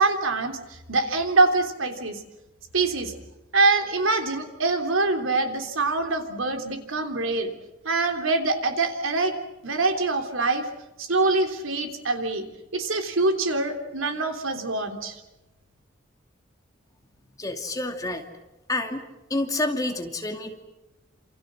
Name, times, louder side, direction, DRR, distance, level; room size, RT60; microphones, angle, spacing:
voice 1, 0.0-2.2 2.7-3.1 3.5-7.5 7.8-9.3 9.6-10.6 11.0-12.4 12.7-15.2, right 3 dB, 90° right, 5 dB, 3.4 m, -24 dB
voice 2, 17.4-18.2 18.7-19.0 19.3-20.7, left 2 dB, 20° left, 4 dB, 2.5 m, -28 dB
28.5 x 28.0 x 6.4 m, 1.0 s
head